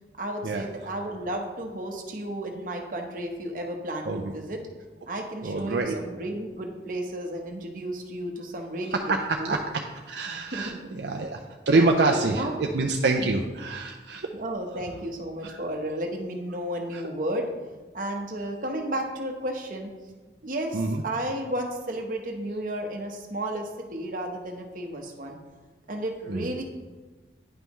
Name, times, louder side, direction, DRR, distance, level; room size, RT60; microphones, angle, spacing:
voice 1, 0.2-4.6 5.1-9.0 9.4-9.6 10.3-11.0 11.7-12.6 13.2-13.3 14.3-17.5 17.9-19.9 20.4-25.4 25.9-26.6, right 1 dB, 50° right, 2 dB, 1.0 m, -33 dB
voice 2, 5.4-5.9 8.9-9.6 10.1-11.4 11.7-14.3 15.4-15.6 16.9-17.0 20.7-21.0 26.3-26.5, right 3 dB, 70° right, 2 dB, 0.5 m, -26 dB
9.7 x 5.5 x 3.1 m, 1.3 s
head